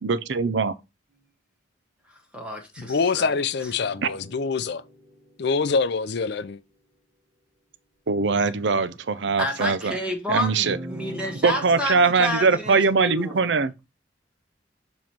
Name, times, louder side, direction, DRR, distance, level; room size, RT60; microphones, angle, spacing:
voice 1, 0.0-0.7 8.1-10.0 10.3-10.8 11.4-13.7, right 4 dB, 70° right, 0.5 m, -22 dB
voice 2, 2.1-3.3 9.4-13.6, left 1 dB, 5° right, 1.1 m, -30 dB
voice 3, 2.8-4.8 5.4-6.6, left 5 dB, 65° left, 0.5 m, -25 dB
sound 1, 3.7-6.3 10.6-12.4, equal, 35° right, 1.8 m, -42 dB
7.2 x 3.1 x 4.4 m
head